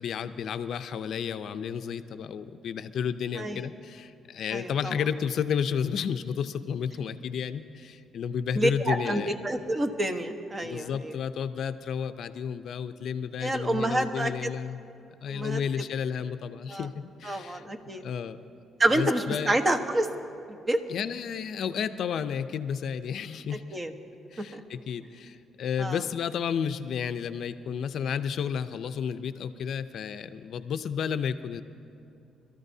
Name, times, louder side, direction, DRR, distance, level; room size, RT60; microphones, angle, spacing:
voice 1, 0.0-9.3 10.6-14.8 15.2-17.6 17.9-18.4 18.9-19.5 20.9-23.8 24.3-31.6, left 7 dB, 70° left, 10 dB, 0.5 m, -32 dB
voice 2, 4.5-4.9 8.5-11.1 13.4-14.5 15.3-15.6 16.7-16.9 17.2-18.0 18.8-20.1 20.5-20.8 23.7-23.9 24.4-24.6 25.8-26.0, right 1 dB, 30° right, 6 dB, 1.1 m, -28 dB
26.5 x 13.5 x 2.8 m, 2.6 s
cardioid pair, 90°, 0 cm